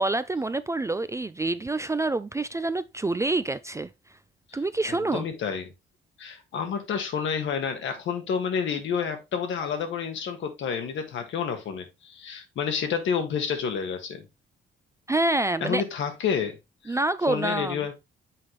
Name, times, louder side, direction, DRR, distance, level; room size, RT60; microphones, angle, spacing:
voice 1, 0.0-3.9 4.5-5.3 15.1-15.8 16.9-17.8, right 2 dB, 15° right, 0.3 m, -27 dB
voice 2, 4.9-5.7 6.2-14.2 15.6-16.6 16.8-17.0 17.3-17.9, left 7 dB, 70° left, 1.5 m, -29 dB
7.5 x 4.2 x 3.1 m
cardioid pair, 90°, 20 cm